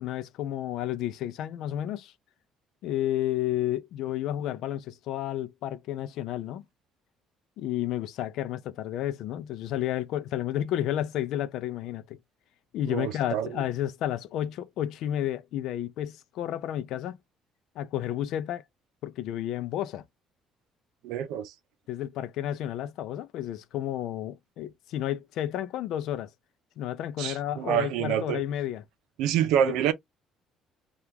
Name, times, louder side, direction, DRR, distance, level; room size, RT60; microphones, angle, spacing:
voice 1, 0.0-2.1 2.8-6.6 7.6-12.2 12.7-17.2 17.8-18.6 19.0-20.0 21.9-26.3 26.8-28.8 29.6-29.8, left 12 dB, 65° left, 0.4 m, -31 dB
voice 2, 12.9-13.5 21.0-21.5 27.2-28.4 29.2-29.9, right 10 dB, 90° right, 0.5 m, -27 dB
2.8 x 2.4 x 3.4 m
cardioid pair, 165°, 0 cm